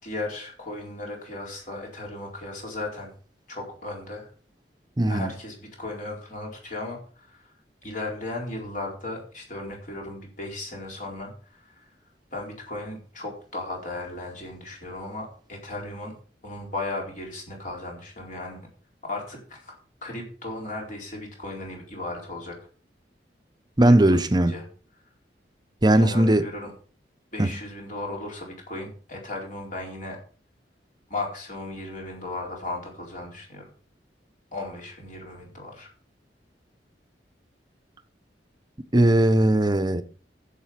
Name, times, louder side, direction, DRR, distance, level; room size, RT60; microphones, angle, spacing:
voice 1, 0.0-3.1 3.5-4.3 5.1-7.5 7.8-11.9 12.3-16.1 16.4-18.7 19.1-22.6 23.8-24.6 25.9-26.7 27.3-30.2 31.1-33.7 34.5-35.9, left 2 dB, 50° left, 4.3 m, -36 dB
voice 2, 5.0-5.3 23.8-24.6 25.8-26.5 27.4-27.5 38.9-40.0, right 1 dB, 25° right, 0.8 m, -19 dB
11.0 x 7.6 x 5.8 m
head